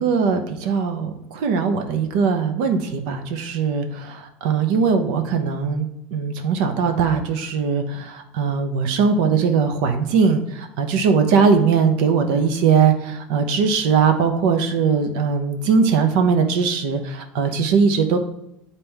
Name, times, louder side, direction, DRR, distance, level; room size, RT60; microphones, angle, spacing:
voice 1, 0.0-18.2, right 5 dB, 90° right, 6 dB, 0.8 m, -20 dB
8.9 x 4.1 x 3.4 m, 0.84 s
cardioid pair, 165°, 5 cm